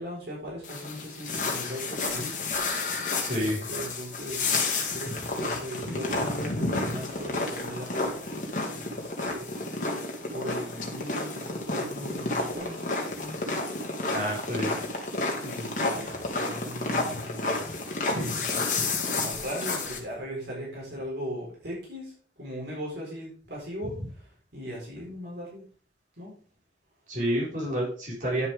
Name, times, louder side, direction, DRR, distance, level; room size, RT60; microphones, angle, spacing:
voice 1, 0.0-2.9 3.3-8.2 8.9-9.6 10.3-12.9 13.2-13.7 14.1-14.2 15.4-18.8 19.2-22.1 22.4-25.6 26.2-26.4, equal, 65° right, -4 dB, 4.4 m, -39 dB
sound 1, 0.6-20.0, left 3 dB, 45° left, 2.0 m, -31 dB
voice 2, 3.2-3.6 14.1-14.7 27.1-28.5, equal, 45° right, -5 dB, 4.7 m, -29 dB
10.5 x 7.2 x 3.6 m, 0.41 s
head